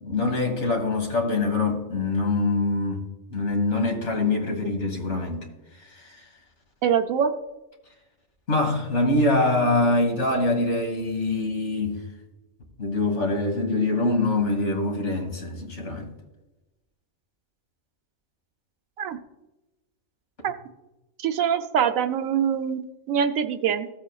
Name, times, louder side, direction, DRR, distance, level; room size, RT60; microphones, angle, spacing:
voice 1, 0.0-3.1 3.3-5.5 5.9-6.2 8.5-12.0 12.8-16.1, left 2 dB, 60° left, 1.9 m, -24 dB
voice 2, 6.8-7.3 19.0-19.2 20.4-20.5 21.2-23.9, right 8 dB, 80° right, 1.1 m, -24 dB
15.5 x 7.6 x 2.3 m
omnidirectional pair, 1.4 m